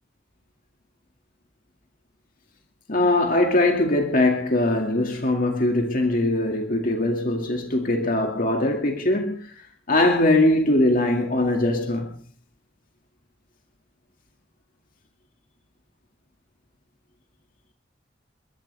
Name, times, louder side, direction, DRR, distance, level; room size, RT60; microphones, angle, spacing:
voice 1, 2.9-9.5 9.9-12.2, left 1 dB, 45° left, 2.3 m, -21 dB
28.5 x 13.5 x 3.5 m
head